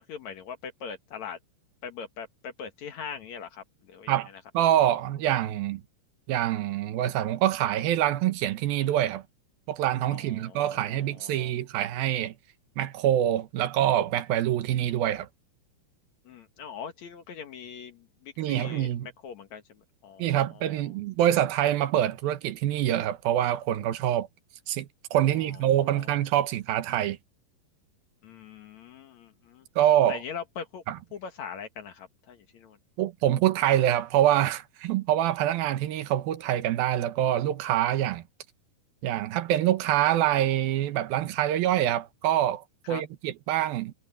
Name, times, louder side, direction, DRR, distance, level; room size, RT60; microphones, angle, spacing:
voice 1, 0.0-1.4 1.8-4.2 10.1-11.5 16.2-20.9 25.3-26.1 28.2-29.7 30.1-30.8 31.1-32.8 42.8-43.0, left 7 dB, 60° left, 2.4 m, -42 dB
voice 2, 4.5-5.8 6.3-9.2 9.7-12.3 12.8-15.3 18.4-19.1 20.2-24.3 24.7-27.2 29.8-30.2 30.9-31.0 33.0-38.2 39.0-43.9, right 12 dB, 80° right, 2.9 m, -25 dB
omnidirectional pair, 4.2 m